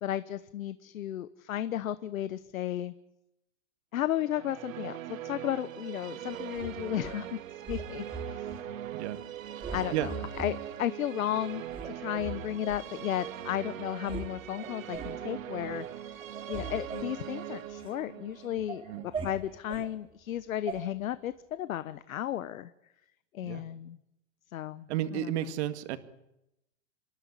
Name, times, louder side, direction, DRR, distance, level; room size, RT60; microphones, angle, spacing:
voice 1, 0.0-2.9 3.9-8.6 9.7-22.7 23.3-24.0 24.5-25.5, left 11 dB, 85° left, 14 dB, 1.1 m, -34 dB
Musical instrument, 4.1-19.6, right 11 dB, 80° right, 2.1 m, -41 dB
sound 1, 6.5-7.2 7.7-8.6 9.0-9.3 9.6-10.5 11.1-11.2 11.7-12.8 13.4-13.5 13.8-14.3 14.6-15.2 15.6-15.9 16.2-18.0 18.4-19.9 20.7-20.8, right 4 dB, 15° right, 3.4 m, -41 dB
voice 2, 24.9-26.0, right 12 dB, 55° right, 9 dB, 2.1 m, -32 dB
27.5 x 12.5 x 9.9 m, 0.87 s
hypercardioid pair, 140°, 40 cm